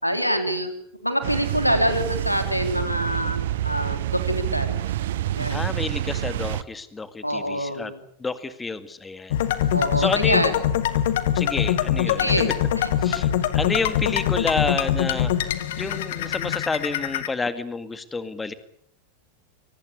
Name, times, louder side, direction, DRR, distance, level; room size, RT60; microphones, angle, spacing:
voice 1, 0.0-0.7 1.0-4.8 5.3-5.6 7.2-8.0 9.7-10.5 12.1-12.9, equal, 90° left, 8 dB, 3.4 m, -25 dB
sound 1, 1.2-6.6, right 13 dB, 55° right, 0.9 m, -27 dB
voice 2, 5.5-7.9 8.2-9.3 10.0-10.6 11.3-12.4 13.0-15.3 15.8-18.5, left 4 dB, 10° left, 12 dB, 2.1 m, -29 dB
sound 2, 9.3-17.3, left 11 dB, 55° left, 1.9 m, -23 dB
24.5 x 19.0 x 8.5 m, 0.67 s
figure-of-eight pair, 90°, 0 cm